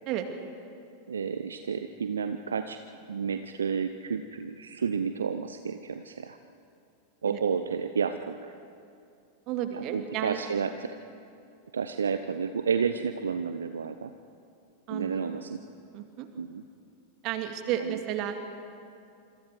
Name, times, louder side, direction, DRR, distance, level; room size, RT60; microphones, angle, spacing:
voice 1, 1.1-2.8 3.1-6.4 7.2-8.5 9.7-10.9 11.7-14.1 14.9-15.6 16.4-16.6 17.8-18.0, right 6 dB, 70° right, 9 dB, 0.8 m, -31 dB
voice 2, 9.5-10.4 14.9-15.5 15.9-16.3 17.2-18.3, right 11 dB, 40° right, 6 dB, 2.2 m, -32 dB
27.0 x 26.0 x 4.8 m, 2.5 s
figure-of-eight pair, 90°, 0 cm